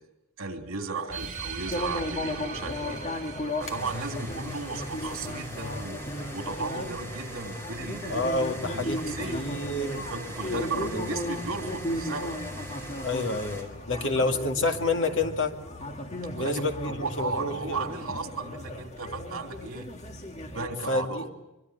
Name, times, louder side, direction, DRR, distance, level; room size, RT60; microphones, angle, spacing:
voice 1, 0.4-3.2 3.6-6.0 6.3-8.3 8.7-9.4 9.9-12.4 13.9-14.1 16.3-19.9 20.4-21.3, right 3 dB, 75° right, 4 dB, 3.2 m, -35 dB
sound 1, 1.1-6.1, right 5 dB, 35° right, 3.3 m, -41 dB
sound 2, 1.7-20.7, left 1 dB, 30° left, 1.9 m, -36 dB
sound 3, 3.6-13.6, right 1 dB, 10° left, 4.1 m, -42 dB
voice 2, 8.1-9.0 9.3-10.0 10.5-11.2 13.0-15.5 16.3-17.8 20.9-21.3, left 2 dB, 60° left, 4 dB, 2.3 m, -29 dB
24.0 x 23.5 x 8.1 m, 0.94 s
head